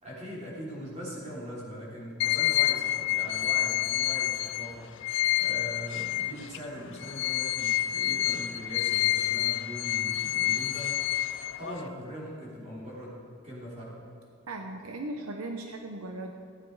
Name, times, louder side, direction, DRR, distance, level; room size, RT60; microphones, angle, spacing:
voice 1, 0.0-14.0, equal, 30° right, -6 dB, 3.6 m, -41 dB
sound 1, 2.2-6.6 7.0-11.9, left 14 dB, 55° left, 0.3 m, -28 dB
voice 2, 14.5-16.3, right 2 dB, 80° right, 3 dB, 0.9 m, -37 dB
15.5 x 9.4 x 4.8 m, 2.3 s
head